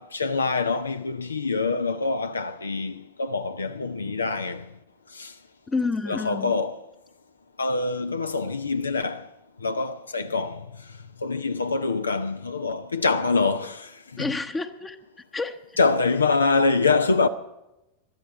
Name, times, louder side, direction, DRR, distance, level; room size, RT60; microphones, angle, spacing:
voice 1, 0.0-4.7 5.1-5.3 6.1-6.8 7.6-9.3 9.6-10.6 11.2-14.3 15.8-17.3, left 4 dB, 75° left, 0.7 m, -25 dB
voice 2, 5.7-6.5 14.2-15.0 15.3-15.8, left 3 dB, 15° left, 0.9 m, -29 dB
20.5 x 12.5 x 4.8 m
figure-of-eight pair, 90°, 0 cm